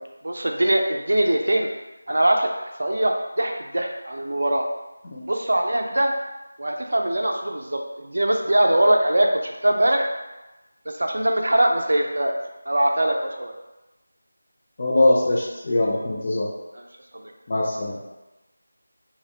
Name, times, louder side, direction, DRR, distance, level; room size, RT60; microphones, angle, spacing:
voice 1, 0.2-1.7 2.1-4.7 5.2-6.1 6.6-10.1 11.0-12.4 12.7-13.6 16.8-16.9, right 1 dB, 75° right, 2 dB, 0.4 m, -22 dB
voice 2, 14.8-16.5 17.5-18.0, left 2 dB, 35° left, -3 dB, 0.3 m, -22 dB
2.6 x 2.0 x 2.7 m, 1.0 s
figure-of-eight pair, 175°, 0 cm